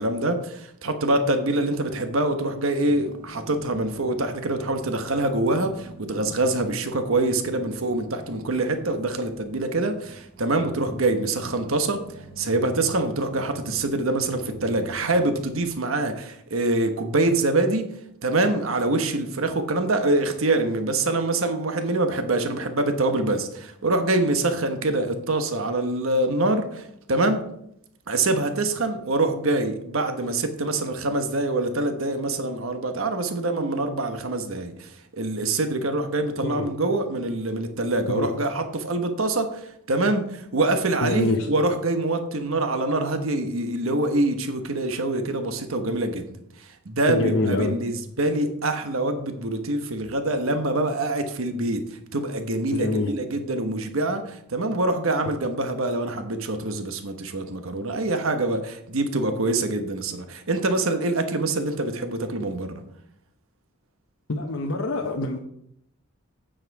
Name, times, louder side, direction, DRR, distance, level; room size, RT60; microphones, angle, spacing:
voice 1, 0.0-12.1 12.4-17.9 18.2-27.4 28.1-46.3 46.6-51.8 52.1-62.8, right 2 dB, 80° right, 1.1 m, -25 dB
sound 1, 2.9-15.7, right 1 dB, 40° right, 2.1 m, -45 dB
voice 2, 41.0-41.5 47.1-47.8 52.7-53.1 55.3-55.4 64.3-65.4, left 2 dB, 75° left, 0.9 m, -25 dB
8.9 x 7.6 x 4.7 m
head